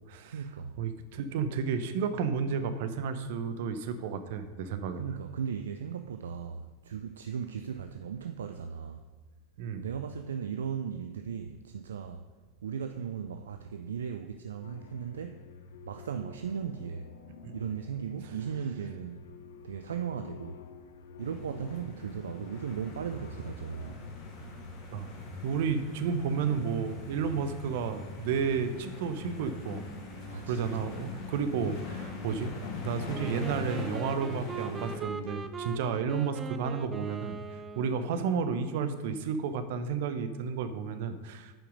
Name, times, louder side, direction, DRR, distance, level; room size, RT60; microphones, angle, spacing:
voice 1, 0.2-0.8 4.9-9.1 9.8-12.2 12.6-15.4 15.9-17.1 17.5-19.2 19.6-20.6 21.2-23.9 30.3-31.0 32.2-32.5, right 7 dB, 80° right, 7 dB, 0.4 m, -37 dB
voice 2, 0.8-5.0 9.6-9.9 17.4-17.5 24.9-25.1 25.4-29.8 30.4-32.5 32.8-37.4 37.8-41.5, right 6 dB, 65° right, 10 dB, 0.8 m, -32 dB
sound 1, 14.6-23.9, left 6 dB, 75° left, 0.6 m, -50 dB
sound 2, 21.2-35.0, left 3 dB, 55° left, 2.0 m, -42 dB
Wind instrument woodwind instrument, 33.1-38.3, right 5 dB, 20° right, 0.6 m, -41 dB
8.8 x 5.7 x 5.3 m, 1.3 s
hypercardioid pair, 90°, 0 cm